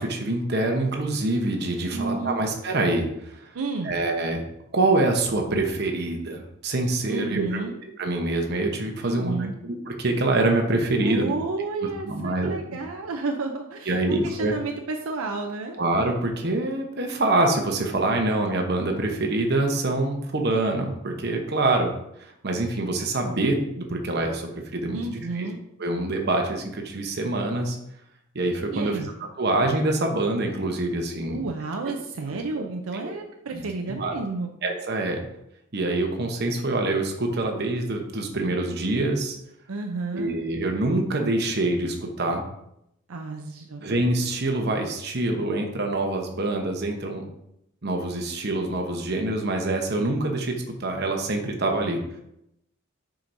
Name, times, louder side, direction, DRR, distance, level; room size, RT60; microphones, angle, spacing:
voice 1, 0.0-3.4 3.8-4.4 4.7-7.7 8.0-11.3 12.0-12.8 13.9-14.5 15.8-21.9 22.2-25.5 25.8-27.8 28.3-29.0 29.4-31.4 32.5-32.6 33.0-33.2 33.5-33.6 33.9-34.1 34.6-35.2 35.7-39.4 40.1-42.4 43.8-47.3 47.8-52.0, right 2 dB, 50° right, 3 dB, 0.9 m, -25 dB
voice 2, 1.9-2.4 3.5-3.9 7.1-7.7 9.0-9.5 11.0-15.8 24.9-25.6 28.7-29.1 31.3-34.5 39.7-40.3 43.1-43.9, right 3 dB, 80° right, 3 dB, 0.5 m, -31 dB
7.3 x 5.0 x 2.6 m, 0.80 s
head